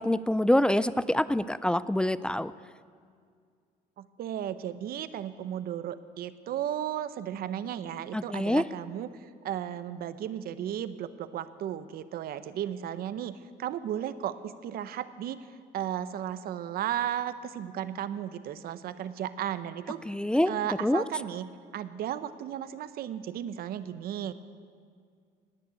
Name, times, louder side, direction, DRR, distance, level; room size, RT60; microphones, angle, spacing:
voice 1, 0.0-2.5 8.1-8.6 20.1-20.5 20.8-21.0, left 1 dB, 5° left, 16 dB, 0.3 m, -25 dB
voice 2, 4.0-20.0 20.5-24.3, right 10 dB, 65° right, 13 dB, 0.7 m, -35 dB
18.5 x 6.7 x 9.6 m, 2.1 s
cardioid pair, 110°, 17 cm